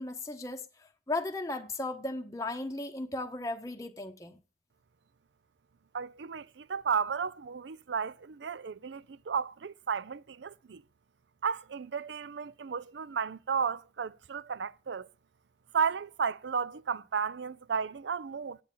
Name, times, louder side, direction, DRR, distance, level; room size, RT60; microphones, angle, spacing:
voice 1, 0.0-4.4, left 2 dB, 20° left, 0.8 m, -36 dB
voice 2, 5.9-10.8 11.4-15.1 15.7-18.6, right 6 dB, 75° right, 0.5 m, -33 dB
8.9 x 8.8 x 8.3 m
head